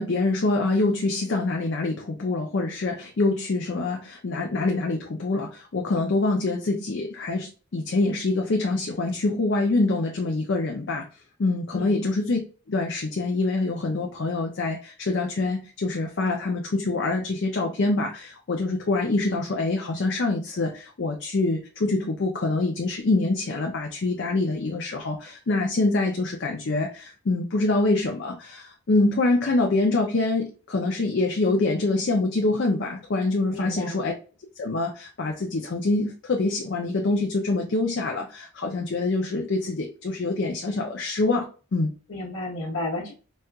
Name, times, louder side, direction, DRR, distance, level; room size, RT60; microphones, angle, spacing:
voice 1, 0.0-11.1 11.4-12.4 12.7-34.1 34.6-41.9, left 2 dB, 55° left, 1 dB, 0.5 m, -25 dB
voice 2, 33.5-34.1 42.1-43.1, left 2 dB, 75° left, -6 dB, 1.0 m, -32 dB
4.1 x 2.3 x 2.3 m, 0.35 s
head